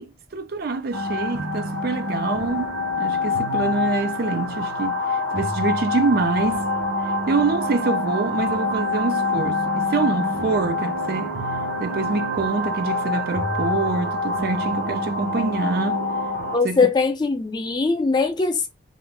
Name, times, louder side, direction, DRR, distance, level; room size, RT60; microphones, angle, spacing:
voice 1, 0.0-6.6 7.3-11.3 11.8-16.0 16.6-16.8, right 4 dB, 50° right, 0.4 m, -25 dB
sound 1, 0.9-16.6, left 2 dB, 80° right, 0.7 m, -26 dB
voice 2, 16.5-18.7, left 4 dB, 20° left, 0.3 m, -21 dB
2.5 x 2.0 x 3.3 m
head